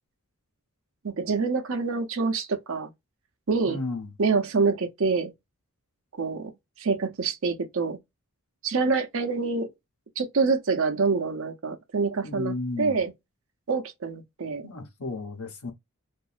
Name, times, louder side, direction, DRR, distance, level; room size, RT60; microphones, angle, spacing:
voice 1, 1.0-2.9 3.5-3.8 4.2-5.3 6.2-6.5 6.8-8.0 8.6-9.7 10.2-13.1 13.7-14.7, right 4 dB, 60° right, 0.7 m, -26 dB
voice 2, 3.7-4.1 12.2-13.0 14.6-15.7, left 3 dB, 80° left, 0.9 m, -33 dB
2.8 x 2.5 x 2.4 m
head